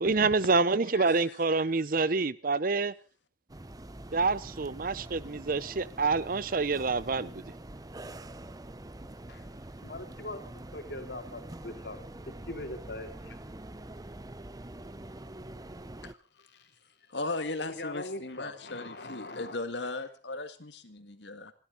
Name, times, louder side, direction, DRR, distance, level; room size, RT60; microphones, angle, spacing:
voice 1, 0.0-2.9 4.1-7.4, right 4 dB, 50° right, 0.7 m, -27 dB
voice 2, 0.9-1.4 16.0-16.1 17.1-21.5, left 2 dB, 85° left, 2.0 m, -37 dB
sound 1, 3.5-16.1, right 1 dB, 20° right, 0.8 m, -45 dB
voice 3, 9.8-10.4 10.7-12.0 12.2-13.4 15.8-15.9 16.4-16.7 17.6-19.6, left 2 dB, 65° left, 3.4 m, -41 dB
27.5 x 13.0 x 4.0 m
head